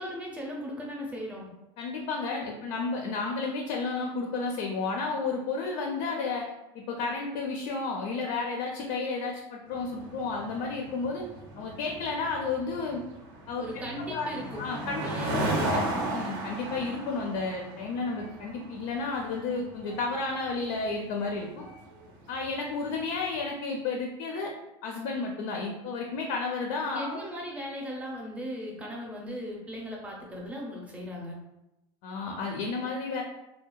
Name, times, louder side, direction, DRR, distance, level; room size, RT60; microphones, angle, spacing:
voice 1, 0.0-1.5 13.6-14.6 15.0-15.8 26.9-31.4, equal, 10° right, -2 dB, 0.6 m, -38 dB
voice 2, 1.8-6.5 6.7-11.3 11.6-13.0 13.5-13.7 14.0-14.3 14.6-15.7 16.1-21.6 22.3-24.5 24.8-27.2 32.0-33.2, left 4 dB, 70° left, 1 dB, 0.4 m, -32 dB
sound 1, 9.7-23.2, right 1 dB, 65° right, 0.5 m, -36 dB
2.7 x 2.1 x 2.2 m, 0.91 s
supercardioid pair, 130°, 13 cm